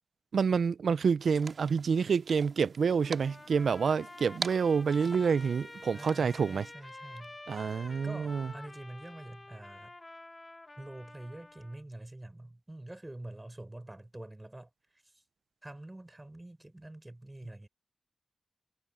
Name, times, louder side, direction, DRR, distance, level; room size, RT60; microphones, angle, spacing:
voice 1, 0.3-6.7 7.5-8.5, right 6 dB, 65° right, 0.3 m, -28 dB
sound 1, 1.2-6.7, right 4 dB, 45° right, 2.2 m, -45 dB
Trumpet, 3.0-11.8, left 2 dB, 20° left, 1.3 m, -49 dB
voice 2, 5.9-7.4 8.0-9.9 10.8-15.2 15.6-17.7, right 1 dB, 15° right, 5.9 m, -46 dB
wide cardioid pair, 175°, 0 cm